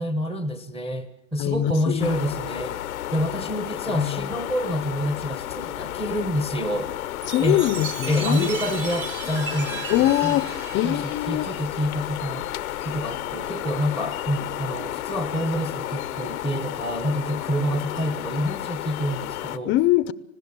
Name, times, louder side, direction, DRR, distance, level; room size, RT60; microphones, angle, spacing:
voice 1, 0.0-2.8 3.1-6.9 7.4-7.6 8.1-9.9 10.2-10.4 10.8-12.5 12.8-19.8, equal, 5° right, 0.9 m, -27 dB
voice 2, 1.4-2.1 3.9-4.3 7.3-8.5 9.9-11.5 19.6-20.1, left 14 dB, 30° left, 0.7 m, -23 dB
sound 1, 2.0-19.6, left 13 dB, 85° left, 0.9 m, -32 dB
Chime, 7.2-11.8, right 6 dB, 80° right, 4.6 m, -36 dB
19.5 x 16.0 x 8.3 m
hypercardioid pair, 130°, 41 cm